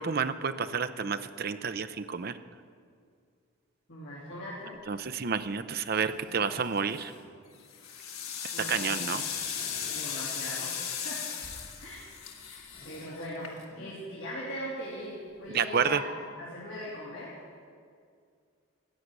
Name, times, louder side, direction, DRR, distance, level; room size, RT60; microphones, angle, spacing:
voice 1, 0.0-2.3 4.9-7.1 8.7-9.2 15.5-16.0, right 6 dB, 45° right, 11 dB, 0.5 m, -30 dB
voice 2, 3.9-4.8 8.5-9.3 9.9-11.2 11.8-12.1 12.5-17.4, left 1 dB, 65° left, -7 dB, 3.1 m, -40 dB
sound 1, 4.7-5.1 5.7-7.3 7.6-8.7 9.2-10.7 11.1-12.2 12.5-14.0 14.8-15.8 16.7-16.8, equal, 45° left, 3.8 m, -54 dB
sound 2, 6.8-7.2 7.6-13.9, left 7 dB, 90° left, 1.7 m, -37 dB
14.5 x 6.6 x 9.5 m, 2.2 s
head